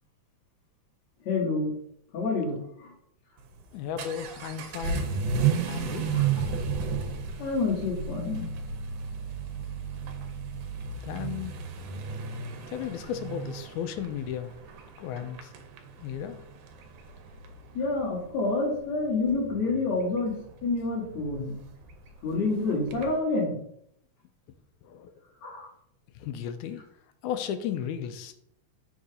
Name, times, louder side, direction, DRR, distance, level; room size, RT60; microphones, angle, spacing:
voice 1, 1.3-1.7 2.1-2.6 6.1-6.3 7.4-8.5 17.8-20.4 20.6-21.6 22.2-23.6 25.4-25.7, left 3 dB, 65° left, -5 dB, 3.6 m, -28 dB
Vehicle / Accelerating revving vroom, 3.4-23.2, right 6 dB, 85° right, 2.3 m, -34 dB
voice 2, 3.7-5.2 5.7-6.1 11.0-11.5 12.7-14.5 15.0-15.5 16.0-16.4 24.8-25.1 26.2-26.8 27.2-28.3, left 9 dB, 90° left, 8 dB, 2.0 m, -34 dB
7.0 x 3.8 x 5.0 m, 0.73 s
omnidirectional pair, 3.4 m